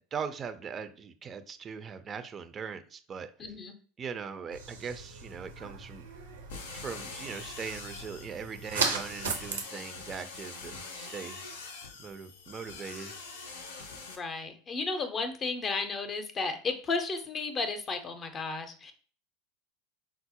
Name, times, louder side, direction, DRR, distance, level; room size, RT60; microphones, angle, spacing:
voice 1, 0.1-3.3 4.0-6.1 6.7-11.4 12.0-13.2, right 6 dB, 35° right, 9 dB, 0.4 m, -40 dB
voice 2, 3.4-3.8 14.1-18.9, left 4 dB, 35° left, 8 dB, 0.6 m, -33 dB
sound 1, 4.5-9.6, right 5 dB, 85° right, 0.6 m, -37 dB
sound 2, 6.5-14.2, left 4 dB, 75° left, 0.5 m, -44 dB
4.6 x 2.0 x 2.8 m, 0.42 s
hypercardioid pair, 85°, 0 cm